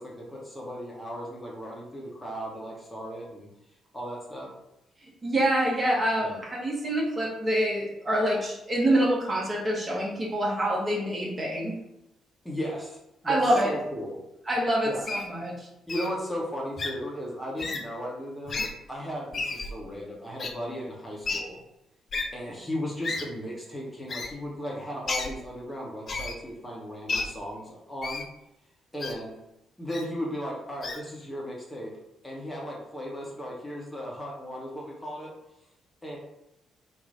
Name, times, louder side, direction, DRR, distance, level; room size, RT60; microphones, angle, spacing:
voice 1, 0.0-3.5 3.9-4.5 6.2-6.4 12.4-14.2 14.8-15.1 15.9-18.6 18.9-21.6 22.3-28.2 28.9-29.4 29.8-31.9 32.2-35.3 36.0-36.2, equal, 10° left, -3 dB, 1.0 m, -36 dB
voice 2, 5.2-11.8 13.2-13.7 14.5-15.7, right 1 dB, 30° right, -3 dB, 1.2 m, -26 dB
Wild animals, 15.1-15.3 15.9-16.1 16.8-16.9 17.6-17.8 18.5-18.7 19.3-19.7 20.4-20.5 21.2-21.4 22.1-22.2 23.0-23.2 24.1-24.3 25.1-25.3 26.1-26.3 27.1-27.2 28.0-28.2 29.0-29.1 29.9-30.0 30.8-31.0, left 3 dB, 45° left, 0.5 m, -31 dB
3.0 x 2.3 x 4.1 m, 0.88 s
figure-of-eight pair, 40°, 0 cm